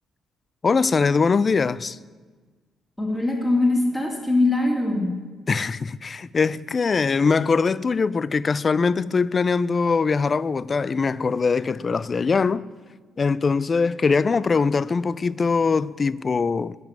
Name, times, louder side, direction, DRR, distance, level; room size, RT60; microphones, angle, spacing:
voice 1, 0.6-2.0 5.5-12.7 13.2-16.8, left 4 dB, 35° left, 0.3 m, -22 dB
voice 2, 3.0-5.1, left 2 dB, 5° left, 2.5 m, -22 dB
10.5 x 6.0 x 8.8 m
cardioid pair, 90°, 0 cm